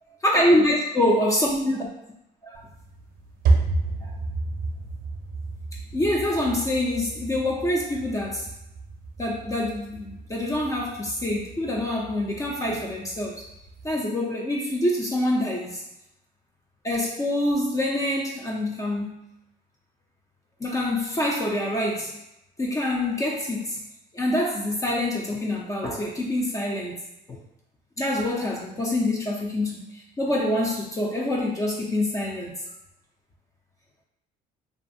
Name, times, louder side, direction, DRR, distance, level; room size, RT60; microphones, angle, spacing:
voice 1, 0.2-1.9 2.4-2.6 4.0-4.1 5.9-8.5 9.2-13.4 13.8-15.8 16.8-19.2 20.6-22.2 22.6-23.8 24.1-27.0 27.3-27.4 28.0-32.5, left 1 dB, 20° left, -2 dB, 0.4 m, -25 dB
sound 1, 2.5-13.9, right 3 dB, 60° right, 0.5 m, -31 dB
2.6 x 2.3 x 2.6 m, 0.85 s
cardioid pair, 110°, 17 cm